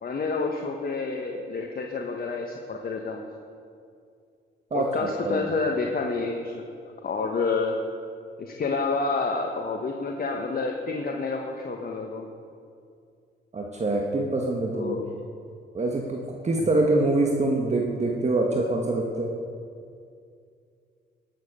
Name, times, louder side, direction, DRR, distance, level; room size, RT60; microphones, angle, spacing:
voice 1, 0.0-3.2 4.7-6.7 7.0-7.8 8.4-12.3 14.7-15.1, left 4 dB, 45° left, 2 dB, 1.2 m, -29 dB
voice 2, 13.5-15.0 15.7-19.3, right 2 dB, 35° right, 0 dB, 1.5 m, -25 dB
18.0 x 7.5 x 6.7 m, 2.4 s
cardioid pair, 90°, 20 cm